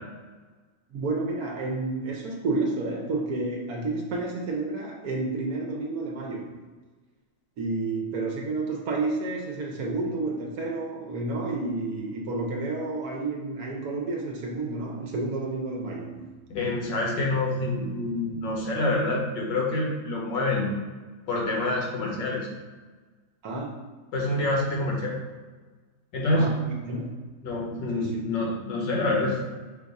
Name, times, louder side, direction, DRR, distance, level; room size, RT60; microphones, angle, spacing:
voice 1, 0.9-6.7 7.6-16.3 23.4-23.7 26.3-27.1 27.9-28.3, right 3 dB, 65° right, 0 dB, 1.0 m, -30 dB
voice 2, 16.5-20.7 21.3-22.5 24.1-25.2 26.1-26.5 27.4-29.4, left 2 dB, 85° left, -2 dB, 1.7 m, -27 dB
5.2 x 2.3 x 4.0 m, 1.3 s
omnidirectional pair, 1.9 m